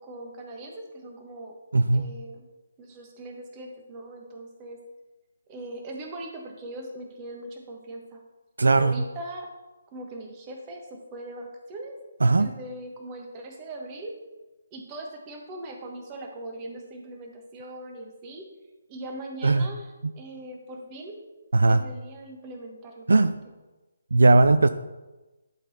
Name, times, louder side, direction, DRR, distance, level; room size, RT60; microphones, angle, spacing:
voice 1, 0.0-1.6 1.9-2.4 2.8-4.8 5.5-8.2 8.7-9.5 9.9-12.0 12.3-14.1 14.7-18.5 18.9-21.2 21.7-23.1, right 1 dB, 25° right, 2 dB, 1.3 m, -40 dB
voice 2, 1.7-2.1 8.6-8.9 12.2-12.5 19.4-19.7 21.5-21.8 23.1-23.4 24.1-24.7, right 3 dB, 70° right, 12 dB, 0.3 m, -18 dB
11.0 x 4.1 x 4.2 m, 1.1 s
figure-of-eight pair, 145°, 0 cm